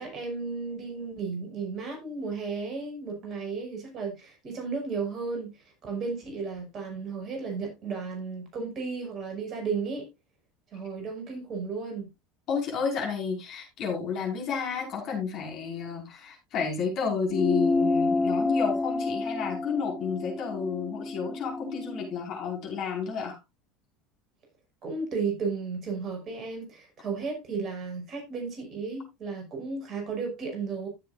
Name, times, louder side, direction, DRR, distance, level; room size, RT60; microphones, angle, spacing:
voice 1, 0.0-5.5 5.8-10.1 10.7-12.1 24.8-30.9, right 4 dB, 40° right, 5.7 m, -34 dB
voice 2, 12.5-23.4, left 6 dB, 50° left, 5.6 m, -31 dB
sound 1, 17.3-22.1, left 3 dB, 15° left, 0.8 m, -29 dB
15.5 x 7.9 x 2.6 m
hypercardioid pair, 75°, 0 cm